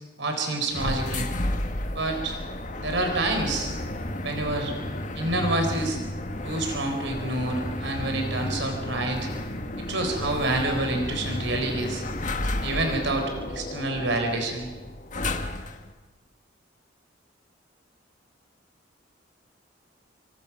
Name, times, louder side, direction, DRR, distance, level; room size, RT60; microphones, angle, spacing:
voice 1, 0.2-1.3 1.9-2.4 2.8-3.7 4.2-4.7 5.1-6.0 6.4-9.3 9.8-12.0 12.6-14.7, right 2 dB, 70° right, 4 dB, 4.3 m, -28 dB
sound 1, 0.7-15.9, left 1 dB, 40° left, 1.8 m, -32 dB
28.0 x 25.5 x 6.0 m, 1.2 s
head